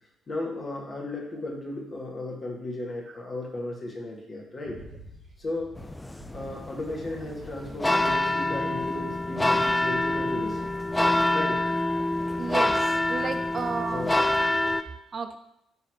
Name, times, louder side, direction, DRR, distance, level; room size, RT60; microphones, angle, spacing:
voice 1, 0.3-4.8 5.4-5.7 6.3-10.7 11.3-11.7 13.7-14.2, left 2 dB, 40° left, -1 dB, 2.0 m, -35 dB
sound 1, 4.6-8.8 9.1-11.2, equal, 70° right, 1.8 m, -50 dB
sound 2, 5.8-14.8, left 1 dB, 10° left, 0.5 m, -26 dB
voice 2, 12.4-14.1 15.1-15.4, right 5 dB, 45° right, 9 dB, 0.5 m, -32 dB
11.0 x 3.9 x 3.2 m, 0.81 s
figure-of-eight pair, 45°, 0 cm